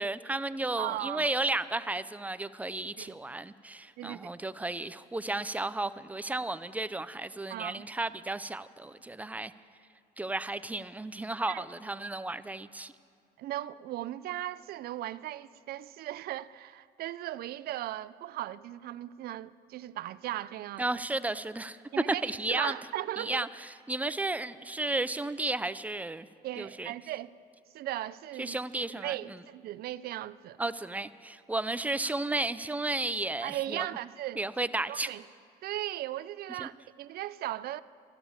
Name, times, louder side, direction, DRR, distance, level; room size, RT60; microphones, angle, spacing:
voice 1, 0.0-9.5 10.2-12.9 20.8-21.8 22.1-22.7 23.2-23.5 23.9-26.3 26.6-26.9 28.4-29.2 30.6-33.9 34.4-35.1 36.6-36.7, right 2 dB, 10° right, 0.4 m, -33 dB
voice 2, 0.8-1.3 3.0-3.2 4.0-4.3 7.5-7.8 11.5-11.6 13.4-20.9 21.9-22.2 22.5-23.5 26.4-27.3 27.7-28.6 29.0-30.6 33.4-34.4 34.9-35.3 35.6-37.8, right 14 dB, 65° right, 0.4 m, -37 dB
13.5 x 12.0 x 7.2 m
cardioid pair, 110°, 17 cm